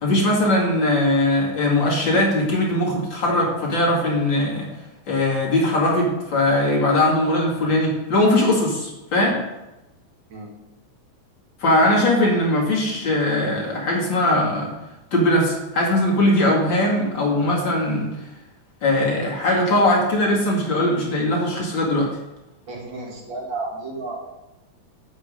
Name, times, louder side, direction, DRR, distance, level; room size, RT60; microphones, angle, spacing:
voice 1, 0.0-4.7 5.1-9.4 11.6-14.7 15.1-18.1 18.8-22.1, left 1 dB, 35° left, -3 dB, 2.6 m, -20 dB
voice 2, 22.7-24.2, right 3 dB, 40° right, -1 dB, 2.0 m, -32 dB
8.0 x 7.2 x 5.2 m, 0.99 s
omnidirectional pair, 4.0 m